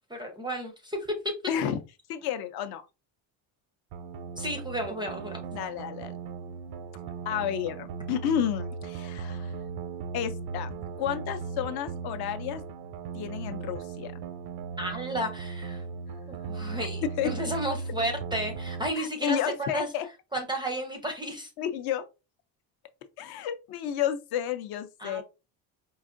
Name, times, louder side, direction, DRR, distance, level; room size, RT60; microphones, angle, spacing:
voice 1, 0.1-1.2 4.4-5.5 14.8-15.8 16.3-19.9 20.3-21.5 25.0-25.2, right 1 dB, 10° right, 0.4 m, -33 dB
voice 2, 1.5-1.8 2.1-2.8 5.5-6.2 7.3-9.5 10.1-12.6 13.1-14.1 16.7-16.9 17.2-17.3 19.0-20.1 21.6-22.1 23.2-25.2, left 9 dB, 55° left, 0.5 m, -31 dB
sound 1, 3.9-18.9, right 5 dB, 75° right, 0.6 m, -37 dB
4.6 x 2.5 x 2.5 m
cardioid pair, 155°, 45 cm